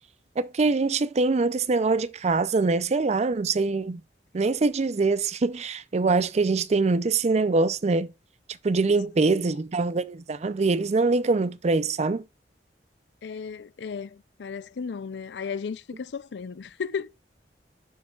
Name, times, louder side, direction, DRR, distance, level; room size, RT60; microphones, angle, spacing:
voice 1, 0.4-4.0 4.3-8.1 8.6-12.2, right 3 dB, 40° right, 0.4 m, -24 dB
voice 2, 13.2-17.1, left 6 dB, 70° left, 0.4 m, -35 dB
10.5 x 5.5 x 2.3 m
head